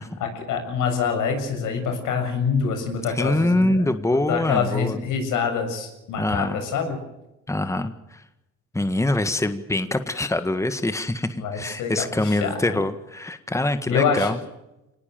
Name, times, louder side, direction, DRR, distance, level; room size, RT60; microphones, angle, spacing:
voice 1, 0.2-3.9 4.3-7.0 11.4-12.8 13.9-14.3, left 6 dB, 85° left, 5 dB, 7.1 m, -26 dB
voice 2, 3.1-5.0 6.2-6.6 7.5-8.2 8.7-14.4, left 1 dB, 10° left, 10 dB, 1.8 m, -24 dB
25.5 x 19.5 x 7.7 m, 0.94 s
cardioid pair, 90°, 30 cm